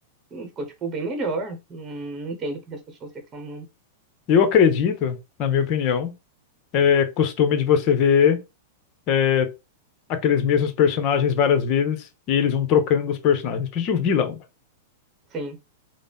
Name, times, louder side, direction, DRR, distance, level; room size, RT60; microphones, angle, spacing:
voice 1, 0.3-3.7 15.3-15.6, right 2 dB, 25° right, 1.0 m, -32 dB
voice 2, 4.3-6.1 6.7-8.4 9.1-9.5 10.1-12.0 12.3-14.4, left 7 dB, 45° left, 0.9 m, -20 dB
3.9 x 2.1 x 3.5 m
hypercardioid pair, 120°, 0 cm